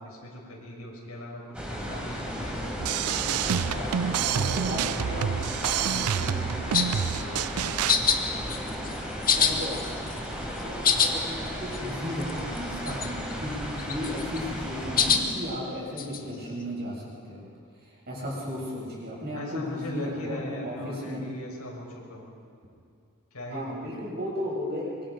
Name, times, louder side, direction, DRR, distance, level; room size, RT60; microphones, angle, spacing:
voice 1, 0.0-2.8 3.3-8.1 19.3-22.3 23.3-23.9, left 1 dB, 85° left, -2 dB, 6.2 m, -40 dB
sound 1, 1.5-15.2, equal, 5° right, 4.3 m, -34 dB
sound 2, 2.8-8.0, right 8 dB, 90° right, 0.5 m, -28 dB
voice 2, 4.2-5.3 9.3-17.5 17.8-21.2 23.5-25.1, equal, 45° right, -5 dB, 7.5 m, -35 dB
sound 3, 6.7-7.0 7.9-8.2 8.5-9.0 9.2-10.3 10.6-11.1 11.5-11.6 11.7-11.8 12.2-12.6 12.9-13.3 13.8-14.4 15.0-15.2 16.0-16.2, left 7 dB, 40° left, 1.7 m, -24 dB
24.5 x 24.5 x 5.3 m, 2.4 s
head